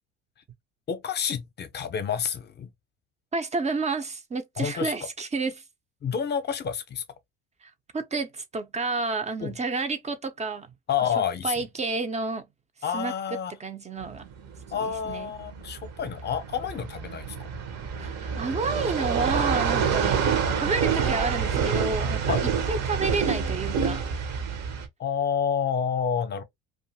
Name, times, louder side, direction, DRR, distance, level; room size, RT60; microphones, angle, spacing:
voice 1, 0.9-2.7 4.6-4.9 6.0-7.0 9.4-9.5 10.9-11.5 12.8-13.5 14.7-17.4 22.3-22.4 25.0-26.4, left 7 dB, 30° left, 0.7 m, -29 dB
voice 2, 3.3-5.6 7.6-10.7 11.2-12.5 12.9-13.1 13.5-14.2 14.8-15.3 18.0-20.2 20.6-22.4 22.7-24.0, right 3 dB, 20° right, 0.5 m, -30 dB
sound 1, 14.0-24.9, right 6 dB, 50° right, 0.8 m, -27 dB
2.5 x 2.4 x 2.7 m
hypercardioid pair, 75°, 33 cm